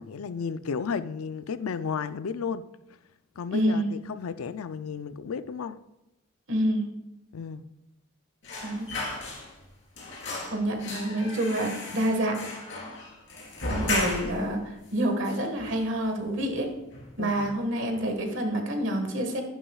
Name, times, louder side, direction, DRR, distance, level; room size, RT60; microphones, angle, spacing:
voice 1, 0.0-2.7 3.4-5.8 7.3-7.6 17.2-17.5, left 6 dB, 75° left, 13 dB, 0.4 m, -33 dB
voice 2, 3.5-3.9 6.5-6.9 8.6-8.9 10.5-12.4 13.7-16.7 17.2-19.4, right 1 dB, 55° right, 4 dB, 1.6 m, -27 dB
sound 1, 8.4-9.7 10.0-14.5 14.8-14.9 15.2-16.1 16.4-16.6 16.9-17.6 17.9-18.1, left 2 dB, 55° left, 3.6 m, -35 dB
11.0 x 10.0 x 2.4 m, 0.91 s
head